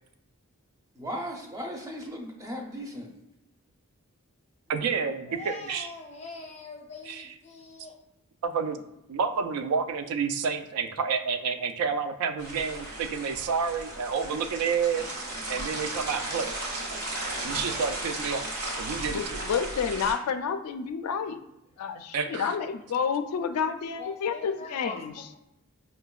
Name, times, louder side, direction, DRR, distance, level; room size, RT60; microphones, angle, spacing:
voice 1, 0.9-3.1, equal, 15° right, 1 dB, 0.5 m, -37 dB
voice 2, 4.7-5.9 7.0-7.3 8.5-8.8 9.1-15.1 15.5-16.5 17.4-18.5 18.8-19.4 22.1-22.5, right 6 dB, 90° right, 9 dB, 0.3 m, -29 dB
voice 3, 5.3-7.9 23.9-25.4, left 3 dB, 30° left, 1 dB, 0.5 m, -43 dB
sound 1, 12.4-20.1, right 1 dB, 75° right, 1.2 m, -35 dB
voice 4, 19.1-21.4 21.8-25.3, left 6 dB, 85° left, 9 dB, 0.3 m, -30 dB
4.9 x 2.2 x 2.3 m, 0.88 s
head